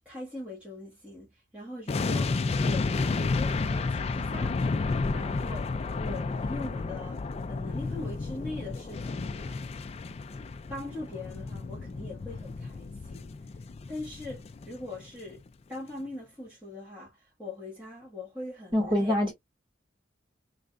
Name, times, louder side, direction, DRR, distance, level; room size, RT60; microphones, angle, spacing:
voice 1, 0.0-1.3 1.5-2.3 2.6-4.8 5.1-7.2 7.5-9.6 10.7-13.3 13.9-15.4 15.7-19.1, left 2 dB, 10° right, 1.7 m, -41 dB
sound 1, 1.9-15.0 15.3-15.5, left 3 dB, 30° left, 0.3 m, -31 dB
voice 2, 18.7-19.3, left 1 dB, 25° right, 2.3 m, -25 dB
3.8 x 3.2 x 2.4 m
head